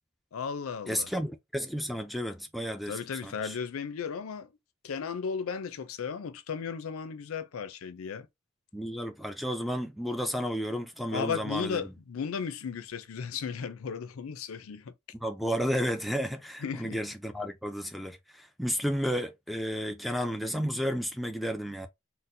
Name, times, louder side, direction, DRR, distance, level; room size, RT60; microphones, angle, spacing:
voice 1, 0.3-1.1 2.9-4.5 4.8-8.3 11.1-14.9 16.6-17.0, left 6 dB, 80° left, 0.5 m, -35 dB
voice 2, 0.9-3.6 8.7-11.8 15.2-21.9, equal, ahead, 0.3 m, -32 dB
4.1 x 2.1 x 2.6 m
head